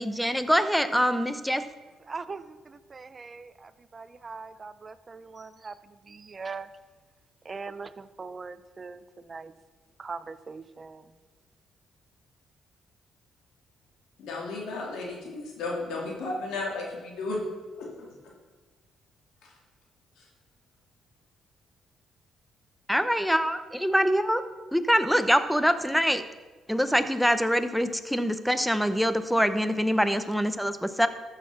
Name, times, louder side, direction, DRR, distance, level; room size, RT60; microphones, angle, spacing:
voice 1, 0.0-1.6 22.9-24.4 24.7-26.2 26.7-31.1, equal, ahead, 11 dB, 0.8 m, -24 dB
voice 2, 2.0-6.7 7.4-9.5 10.0-11.2, right 4 dB, 35° right, 14 dB, 0.6 m, -41 dB
voice 3, 14.2-17.4 17.8-18.1 19.4-19.5 20.2-20.3, left 2 dB, 85° left, -2 dB, 3.2 m, -34 dB
13.5 x 6.5 x 5.9 m, 1.3 s
cardioid pair, 90°, 0 cm